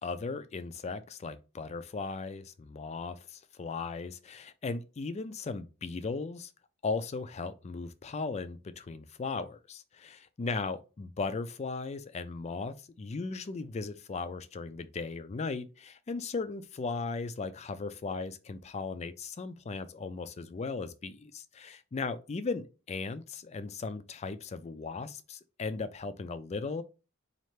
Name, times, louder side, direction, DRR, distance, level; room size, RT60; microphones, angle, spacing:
voice 1, 0.0-6.5 6.8-26.8, left 4 dB, 30° left, 0.4 m, -37 dB
4.3 x 2.4 x 3.1 m
head